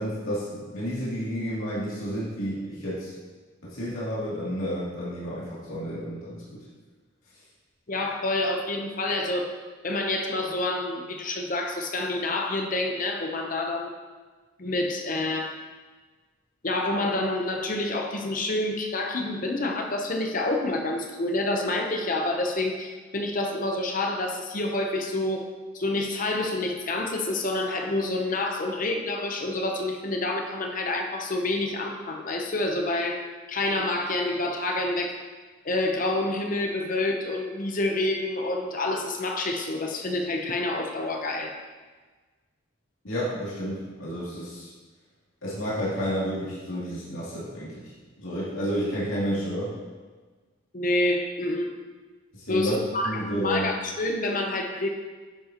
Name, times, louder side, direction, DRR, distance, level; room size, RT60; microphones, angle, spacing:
voice 1, 0.0-3.1 3.6-6.4 43.0-44.7 45.4-47.9 48.2-49.7 52.3-52.8 53.0-53.7, equal, 80° left, -8 dB, 2.6 m, -31 dB
voice 2, 7.9-9.5 9.8-13.9 14.6-15.6 16.6-25.5 25.7-33.2 33.5-35.1 35.6-41.5 50.7-51.7 52.5-54.9, left 2 dB, 40° left, 3 dB, 0.8 m, -28 dB
9.9 x 7.3 x 2.9 m, 1.4 s
head